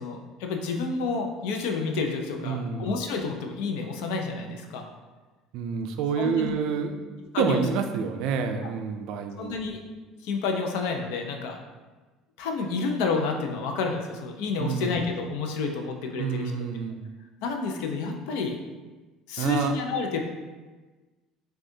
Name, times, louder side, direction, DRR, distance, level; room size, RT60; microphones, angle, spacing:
voice 1, 0.0-4.9 6.2-6.5 7.3-7.6 9.4-9.8 10.2-11.6 12.4-16.5 17.4-18.6 19.3-20.2, left 4 dB, 80° left, 3 dB, 0.5 m, -29 dB
voice 2, 2.4-2.9 5.5-7.0 7.4-9.6 14.6-14.9 16.2-17.1 19.4-19.7, right 6 dB, 65° right, 6 dB, 0.4 m, -28 dB
6.1 x 2.4 x 2.7 m, 1.3 s
cardioid pair, 140°, 0 cm